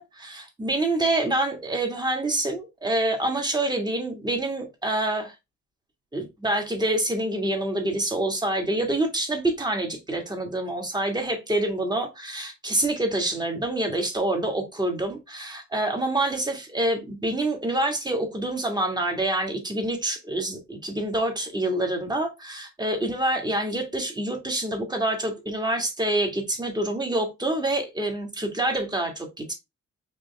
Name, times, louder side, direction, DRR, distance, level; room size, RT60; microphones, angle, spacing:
voice 1, 0.0-5.3 6.1-29.5, right 1 dB, 15° right, 1.8 m, -27 dB
5.2 x 3.0 x 3.3 m
cardioid pair, 90°, 30 cm